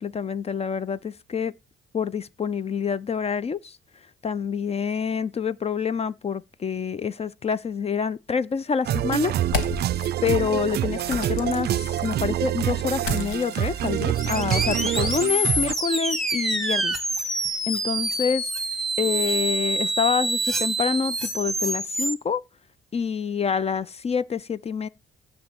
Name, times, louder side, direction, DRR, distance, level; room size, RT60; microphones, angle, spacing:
voice 1, 0.0-1.5 1.9-3.8 4.2-9.3 10.2-18.5 19.0-22.4 22.9-24.9, left 6 dB, 30° left, 0.4 m, -27 dB
sound 1, 8.8-15.7, right 12 dB, 55° right, 0.4 m, -26 dB
sound 2, 9.4-10.1 11.1-12.2 13.0-15.3, left 5 dB, 85° left, 1.6 m, -34 dB
sound 3, 14.2-22.1, right 2 dB, ahead, 1.3 m, -26 dB
6.9 x 6.7 x 7.8 m
cardioid pair, 90°, 20 cm